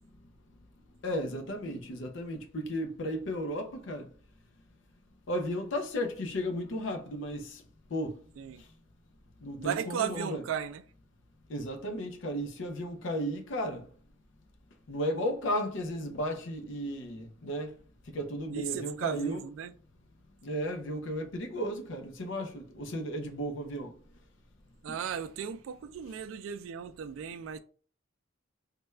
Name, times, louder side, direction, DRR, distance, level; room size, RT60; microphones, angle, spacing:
voice 1, 1.0-4.1 5.3-7.6 7.9-8.2 9.4-10.4 11.5-13.9 14.9-17.8 18.1-19.4 20.4-23.9, equal, 70° left, 0.5 m, -34 dB
voice 2, 9.6-10.8 18.5-19.7 24.8-27.6, right 8 dB, 85° right, 0.3 m, -35 dB
3.3 x 2.2 x 3.2 m
head